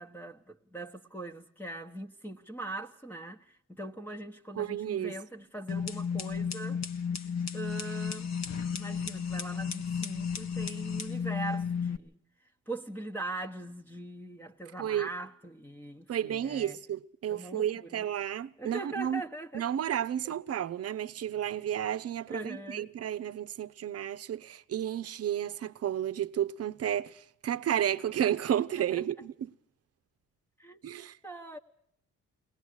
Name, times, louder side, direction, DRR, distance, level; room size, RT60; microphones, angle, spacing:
voice 1, 0.0-6.8 7.5-8.3 8.7-12.2 12.7-16.8 17.3-18.0 18.6-19.6 22.3-22.9 28.9-29.0 30.6-31.6, right 2 dB, 5° left, 1.2 m, -41 dB
voice 2, 4.6-5.1 14.8-15.1 16.1-19.2 19.5-29.5 30.8-31.2, right 10 dB, 50° right, 0.9 m, -32 dB
sound 1, 5.7-12.0, left 6 dB, 60° left, 1.4 m, -33 dB
21.5 x 19.0 x 6.4 m
cardioid pair, 90°, 30 cm